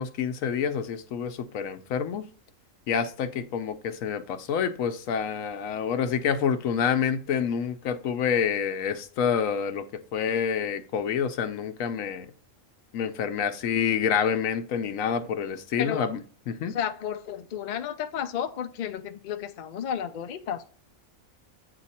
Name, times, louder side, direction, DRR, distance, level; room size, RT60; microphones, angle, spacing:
voice 1, 0.0-2.3 2.9-9.8 10.1-12.3 12.9-16.2 16.5-16.8, left 7 dB, 85° left, 1.1 m, -27 dB
voice 2, 16.7-20.7, left 9 dB, 60° left, 0.5 m, -32 dB
8.3 x 2.9 x 4.1 m
omnidirectional pair, 1.4 m